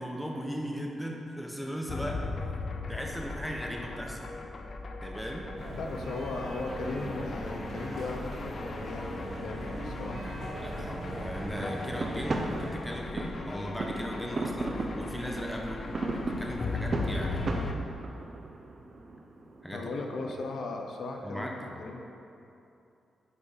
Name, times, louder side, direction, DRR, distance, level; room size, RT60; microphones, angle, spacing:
voice 1, 0.0-2.2 2.9-4.3 5.0-5.5 10.6-15.8 16.4-17.6 19.6-19.9 20.2-20.3 21.2-21.7, equal, ahead, 0 dB, 1.1 m, -37 dB
sound 1, 1.9-17.7, left 3 dB, 45° left, 0.5 m, -38 dB
sound 2, 5.6-12.7, right 1 dB, 65° right, 1.4 m, -40 dB
voice 2, 5.8-10.2 19.7-22.1, left 3 dB, 80° left, 2 dB, 0.7 m, -37 dB
sound 3, 11.5-21.2, right 2 dB, 45° right, 0.7 m, -37 dB
8.4 x 5.1 x 5.4 m, 2.8 s
cardioid pair, 90°, 0 cm